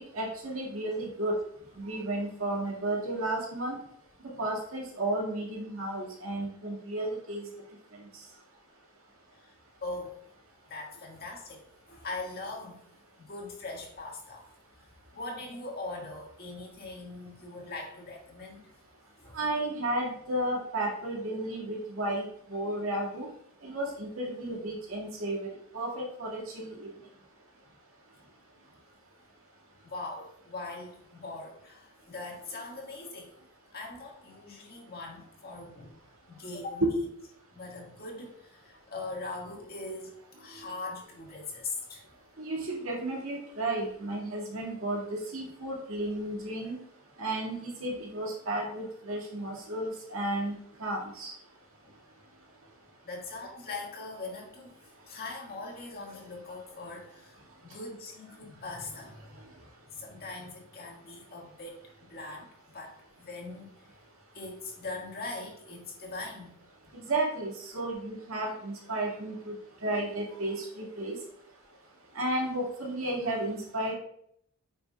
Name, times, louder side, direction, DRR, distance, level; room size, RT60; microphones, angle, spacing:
voice 1, 0.1-1.4 1.8-3.8 4.4-7.5 19.3-23.3 23.6-25.5 25.7-26.9 42.4-46.8 47.2-50.5 50.8-51.3 67.0-69.5 69.8-71.2 72.2-73.9, right 1 dB, 70° right, -2 dB, 2.0 m, -33 dB
voice 2, 9.8-10.2 10.7-12.8 13.2-14.4 15.1-18.6 19.2-19.4 29.8-33.3 33.7-36.0 36.3-36.9 37.5-40.1 40.4-42.0 53.0-54.8 55.1-59.4 59.9-63.7 64.3-66.5, left 3 dB, 45° left, -1 dB, 1.8 m, -41 dB
9.1 x 5.4 x 2.4 m, 0.69 s
head